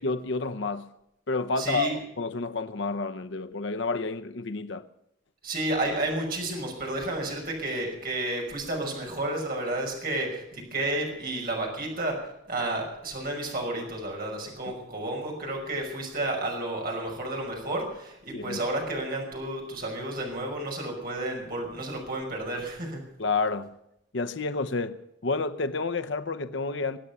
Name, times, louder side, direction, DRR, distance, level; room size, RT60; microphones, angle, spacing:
voice 1, 0.0-0.9 1.3-4.8 18.3-18.6 23.2-23.7 24.1-27.0, left 3 dB, 60° left, 0.8 m, -30 dB
voice 2, 1.6-2.0 5.4-12.2 12.5-23.0, right 2 dB, 45° right, 5.8 m, -31 dB
24.0 x 8.8 x 6.9 m
head